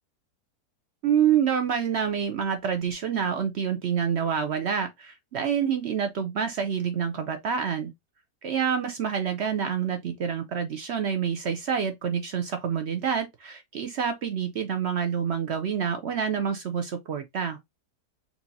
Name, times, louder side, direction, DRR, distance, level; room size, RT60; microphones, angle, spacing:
voice 1, 1.0-7.9 8.4-17.6, right 7 dB, 65° right, 0.6 m, -27 dB
4.5 x 2.7 x 2.6 m
omnidirectional pair, 1.7 m